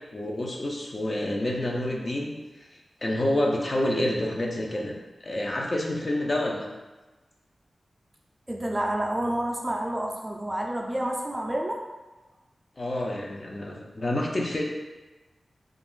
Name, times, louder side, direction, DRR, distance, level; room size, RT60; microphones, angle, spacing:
voice 1, 0.1-4.9 5.2-6.7 12.8-14.6, left 1 dB, 40° left, -1 dB, 0.5 m, -28 dB
voice 2, 8.5-11.8, right 1 dB, 25° right, 0 dB, 0.4 m, -29 dB
2.4 x 2.4 x 3.6 m, 1.2 s
wide cardioid pair, 75°, 0 cm